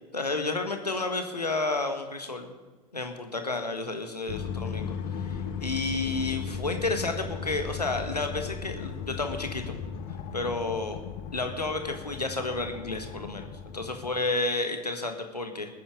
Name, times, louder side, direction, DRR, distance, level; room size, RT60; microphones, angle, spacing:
voice 1, 0.1-2.5 2.9-9.8 10.3-11.0 11.3-13.5 13.7-15.7, left 3 dB, 85° left, 6 dB, 1.6 m, -31 dB
sound 1, 4.3-14.2, left 7 dB, 55° left, 1.5 m, -37 dB
20.5 x 9.9 x 5.1 m, 1.2 s
figure-of-eight pair, 75°, 20 cm